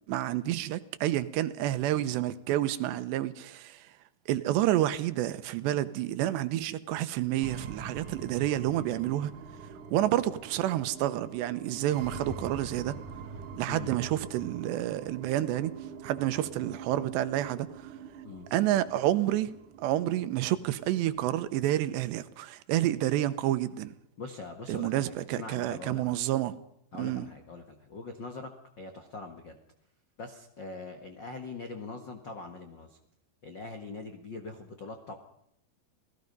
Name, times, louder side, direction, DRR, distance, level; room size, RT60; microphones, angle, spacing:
voice 1, 0.1-3.8 4.3-9.3 9.9-13.0 13.6-17.7 18.5-19.5 19.8-23.9 24.7-26.6 27.0-27.3, right 13 dB, 90° right, 3.2 m, -29 dB
sound 1, 7.4-21.4, right 5 dB, 55° right, 2.9 m, -44 dB
voice 2, 24.2-26.2 26.9-28.5 28.8-29.6 30.2-33.0 33.4-35.1, left 3 dB, 80° left, 1.0 m, -42 dB
28.5 x 18.5 x 5.4 m
omnidirectional pair, 4.9 m